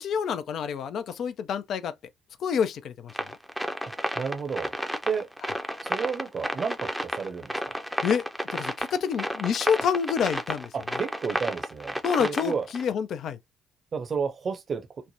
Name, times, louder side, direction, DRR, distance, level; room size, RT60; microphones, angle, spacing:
voice 1, 0.0-1.9 2.4-3.1 8.0-8.2 8.5-10.7 12.0-13.4, left 7 dB, 55° left, 0.4 m, -27 dB
sound 1, 3.1-12.8, equal, 5° right, 0.6 m, -31 dB
voice 2, 4.2-4.7 5.0-5.3 5.8-7.5 10.7-11.9 12.2-12.6 13.9-14.8, right 5 dB, 45° right, 0.7 m, -31 dB
3.2 x 2.1 x 2.7 m
figure-of-eight pair, 45°, 0 cm